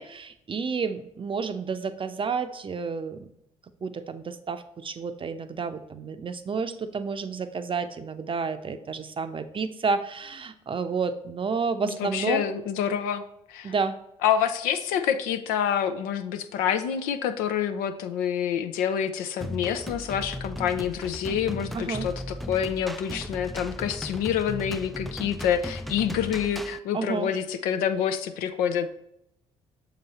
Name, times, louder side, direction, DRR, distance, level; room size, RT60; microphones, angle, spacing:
voice 1, 0.0-3.3 3.8-12.4 13.6-14.0 21.7-22.1 26.9-27.3, right 5 dB, 35° right, 10 dB, 0.6 m, -30 dB
voice 2, 11.8-13.2 13.5-13.7 14.2-28.9, left 8 dB, 75° left, 9 dB, 0.5 m, -27 dB
sound 1, 19.4-26.8, equal, ahead, 0.3 m, -36 dB
6.6 x 4.0 x 4.1 m, 0.78 s
hypercardioid pair, 50°, 15 cm